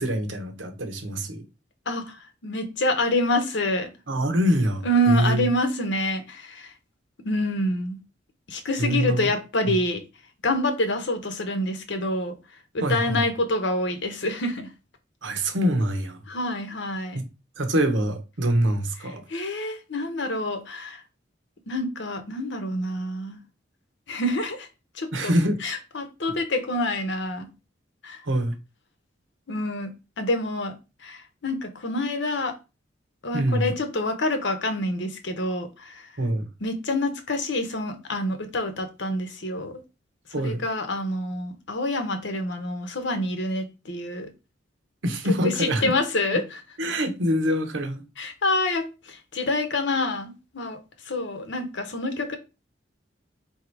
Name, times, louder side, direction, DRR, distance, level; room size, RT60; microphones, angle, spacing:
voice 1, 0.0-1.4 4.1-5.4 8.8-9.3 9.7-9.8 12.8-13.2 15.2-16.2 17.1-17.3 17.6-19.2 25.1-25.6 28.2-28.5 33.3-33.7 36.2-36.4 40.3-40.6 45.0-45.9 46.8-48.0, equal, 85° right, 0.9 m, -24 dB
voice 2, 1.9-3.9 4.8-6.7 7.2-8.0 8.5-10.0 10.4-12.3 12.7-14.7 16.3-17.2 19.0-21.0 21.7-23.4 24.1-24.7 24.9-25.3 25.6-27.5 28.0-28.2 29.5-29.9 30.2-30.7 31.0-32.5 33.2-36.1 36.6-39.8 40.4-44.3 45.2-46.6 48.2-50.8 51.0-52.4, left 1 dB, 75° left, 0.9 m, -27 dB
3.6 x 2.9 x 4.6 m
head